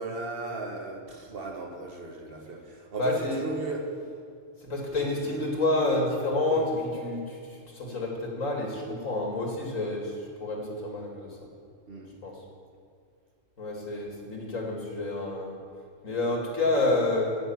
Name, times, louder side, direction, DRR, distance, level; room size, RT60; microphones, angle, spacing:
voice 1, 0.0-4.0 4.9-5.4 6.5-6.7 11.9-12.1, right 2 dB, 45° right, 1.6 m, -36 dB
voice 2, 3.0-3.4 4.6-10.1 10.4-11.4 12.2-12.3 13.6-15.6 16.0-17.3, left 2 dB, 80° left, 2.7 m, -29 dB
15.5 x 6.7 x 8.7 m
omnidirectional pair, 1.3 m